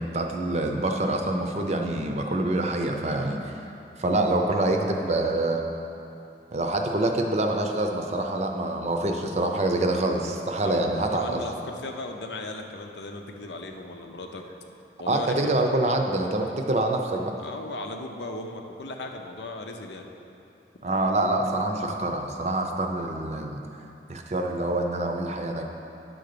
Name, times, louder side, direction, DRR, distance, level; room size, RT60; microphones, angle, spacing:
voice 1, 0.0-3.5 4.0-5.6 6.5-11.4 15.1-17.3 20.8-23.6 24.1-25.6, right 2 dB, 40° right, 3 dB, 0.6 m, -26 dB
voice 2, 10.6-14.4 15.0-15.6 17.4-20.1, left 2 dB, 85° left, 3 dB, 0.7 m, -37 dB
10.0 x 3.9 x 6.7 m, 2.8 s
head